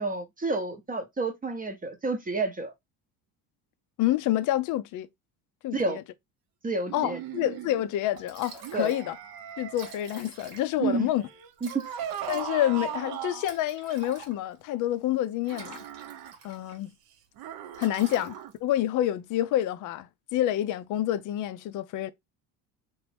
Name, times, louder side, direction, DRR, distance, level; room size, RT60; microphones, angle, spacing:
voice 1, 0.0-2.7 5.7-6.0 6.6-7.2 8.7-8.9 10.8-11.1 11.6-11.8, right 3 dB, 20° right, 0.7 m, -29 dB
voice 2, 4.0-5.1 5.6-6.0 6.9-9.2 9.6-11.2 12.3-15.8 16.4-16.9 17.8-22.1, left 13 dB, 45° left, 0.5 m, -28 dB
sound 1, 6.9-7.8 8.6-10.2 11.2-13.6 15.4-16.3 17.4-18.5, right 10 dB, 55° right, 0.7 m, -38 dB
Liquid, 7.8-7.9 8.2-9.1 9.4-9.5 9.6-10.9 11.6-14.6 15.3-16.8 17.1-17.4 17.7-18.8, right 5 dB, 85° right, 1.3 m, -48 dB
3.0 x 2.6 x 3.2 m
supercardioid pair, 90°, 44 cm